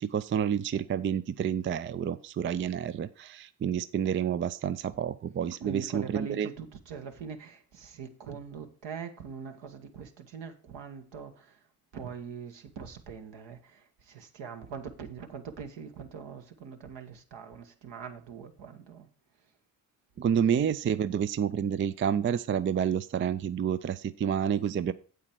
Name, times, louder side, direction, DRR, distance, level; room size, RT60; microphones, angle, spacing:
voice 1, 0.0-6.5 20.2-24.9, right 8 dB, 25° right, 0.4 m, -29 dB
voice 2, 5.6-11.6 11.9-19.1, right 6 dB, 65° right, 1.5 m, -42 dB
8.4 x 8.0 x 4.5 m
hypercardioid pair, 50°, 47 cm